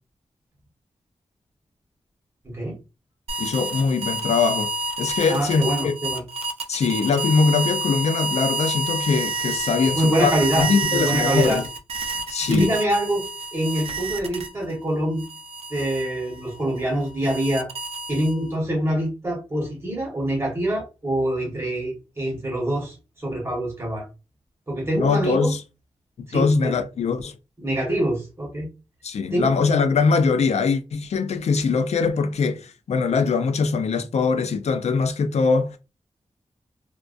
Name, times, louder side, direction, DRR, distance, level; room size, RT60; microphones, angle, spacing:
voice 1, 2.4-2.8 5.3-6.2 9.8-11.6 12.4-13.2 13.5-15.2 15.7-17.7 18.1-24.1 24.7-25.5 26.3-26.7 27.6-28.7 29.3-29.5, right 1 dB, 25° right, 1.2 m, -25 dB
sound 1, 3.3-14.8 15.2-18.6, right 2 dB, 65° right, 0.4 m, -29 dB
voice 2, 3.4-4.7 5.0-5.9 6.7-11.6 12.3-12.7 25.0-25.6 26.2-27.3 29.0-35.8, left 5 dB, 80° left, 0.4 m, -22 dB
2.3 x 2.2 x 2.5 m
wide cardioid pair, 125°, 11 cm